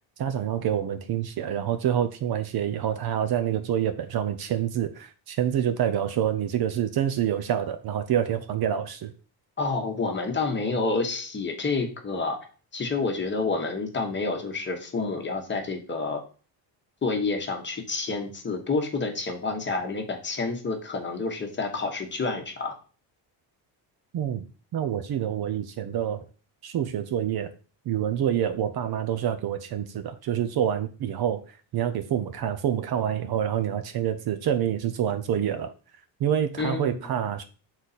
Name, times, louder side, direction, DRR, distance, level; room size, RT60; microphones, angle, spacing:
voice 1, 0.2-9.1 24.1-24.4 24.7-26.2 26.6-27.5 27.9-31.4 31.7-35.7 36.2-37.4, right 9 dB, 50° right, 9 dB, 0.6 m, -27 dB
voice 2, 9.6-12.4 12.7-16.2 17.0-22.7 36.6-37.1, left 3 dB, 25° left, 3 dB, 1.1 m, -29 dB
6.3 x 4.0 x 4.1 m, 0.38 s
cardioid pair, 145°, 47 cm